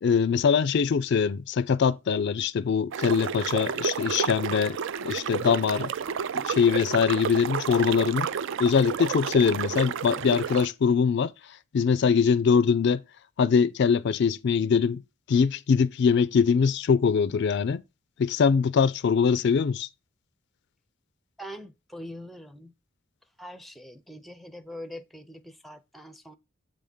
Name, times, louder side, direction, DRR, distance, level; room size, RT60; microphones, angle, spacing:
voice 1, 0.0-5.9 6.5-8.3 8.6-11.3 11.7-13.0 13.4-15.0 15.3-17.8 18.2-19.9, left 6 dB, 55° left, 0.4 m, -23 dB
sound 1, 2.9-10.7, right 7 dB, 60° right, 0.4 m, -31 dB
voice 2, 21.4-22.7 23.4-26.4, equal, ahead, 0.5 m, -43 dB
7.8 x 3.5 x 5.4 m
head